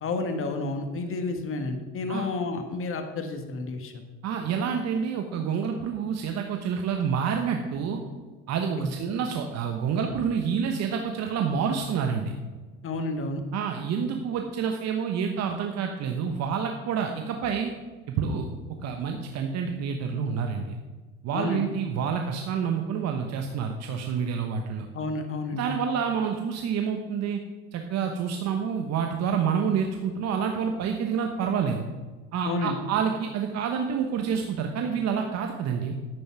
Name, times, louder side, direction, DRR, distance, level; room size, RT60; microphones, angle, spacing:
voice 1, 0.0-3.9 8.8-8.9 12.8-13.4 21.3-21.7 24.9-25.6 32.4-32.8, left 3 dB, 40° left, 6 dB, 1.7 m, -30 dB
voice 2, 4.2-8.0 8.5-12.3 13.5-17.7 18.1-18.5 18.8-20.8 21.2-24.9 25.5-27.4 27.7-31.8 32.3-35.9, right 6 dB, 55° right, 4 dB, 1.2 m, -28 dB
10.5 x 8.4 x 4.7 m, 1.3 s
hypercardioid pair, 80°, 32 cm